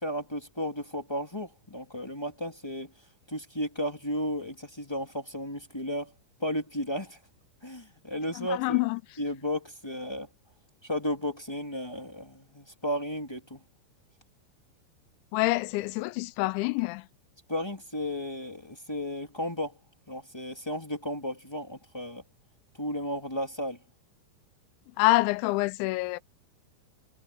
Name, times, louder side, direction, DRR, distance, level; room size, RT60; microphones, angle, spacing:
voice 1, 0.0-2.9 3.3-6.1 6.4-7.2 7.6-8.8 9.2-10.3 10.8-13.6 17.5-19.8 20.1-22.2 22.8-23.8, equal, 15° left, 0.9 m, -34 dB
voice 2, 8.4-9.0 15.3-17.1 25.0-26.2, left 21 dB, 85° left, 2.9 m, -26 dB
omnidirectional pair, 5.3 m